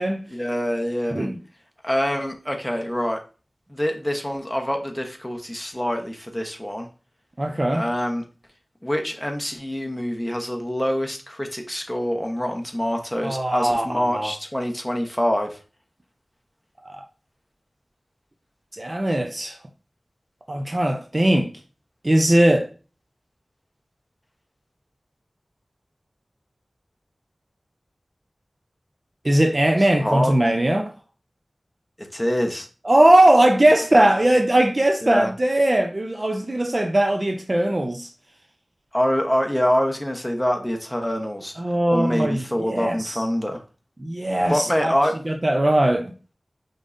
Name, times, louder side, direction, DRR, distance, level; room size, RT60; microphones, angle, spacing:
voice 1, 0.3-1.3 1.8-3.2 3.7-6.9 7.7-8.2 8.8-15.6 29.8-30.6 32.0-32.7 35.0-35.3 38.9-41.5 41.9-43.6 44.5-45.2, equal, 5° left, 1.0 m, -25 dB
voice 2, 7.4-7.8 13.2-13.9 14.1-14.3 16.9-17.0 18.8-19.5 20.5-21.5 22.0-22.7 29.2-30.9 32.8-38.1 41.6-43.1 44.0-44.9 45.3-46.1, right 1 dB, 35° right, 0.5 m, -19 dB
5.2 x 3.9 x 2.6 m
wide cardioid pair, 55°, 0 cm